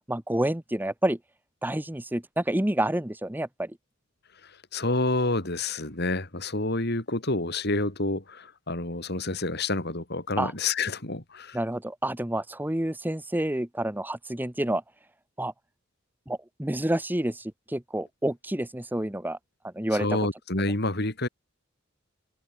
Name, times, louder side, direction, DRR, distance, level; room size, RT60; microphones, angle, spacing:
voice 1, 0.1-1.2 1.6-3.7 10.4-10.5 11.5-14.8 15.4-15.5 16.3-19.4 19.7-20.1, right 1 dB, 10° right, 0.9 m, -28 dB
voice 2, 4.4-11.6 19.9-21.3, left 2 dB, 55° left, 3.8 m, -28 dB
head